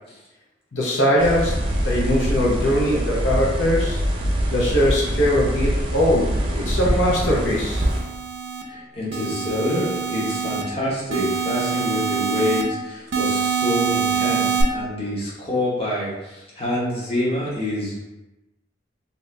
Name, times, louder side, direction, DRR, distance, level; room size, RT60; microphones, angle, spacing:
voice 1, 0.7-4.0 4.5-7.8, equal, 85° left, -4 dB, 0.8 m, -21 dB
sound 1, 1.2-8.0, equal, 30° right, 0.5 m, -24 dB
sound 2, 7.5-8.6 9.1-10.6 11.1-12.6 13.1-14.6, right 6 dB, 80° right, 0.5 m, -25 dB
voice 2, 8.7-18.0, left 1 dB, 30° left, -8 dB, 1.1 m, -26 dB
2.8 x 2.5 x 3.2 m, 0.99 s
head